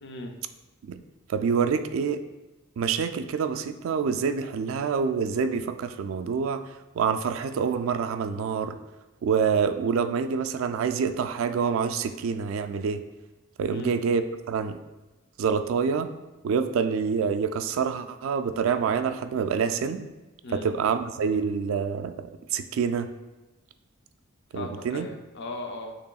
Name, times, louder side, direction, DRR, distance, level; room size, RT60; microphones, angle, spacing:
voice 1, 0.0-0.4 13.7-14.0 20.4-20.7 24.5-26.0, left 2 dB, 60° left, 4 dB, 0.5 m, -37 dB
voice 2, 1.3-2.2 2.8-6.6 7.0-8.8 9.2-13.0 13.6-14.2 14.5-14.8 15.4-16.1 16.4-20.1 20.5-23.1 24.5-25.1, right 6 dB, 75° right, 9 dB, 0.3 m, -26 dB
6.7 x 3.1 x 2.3 m, 1.1 s
head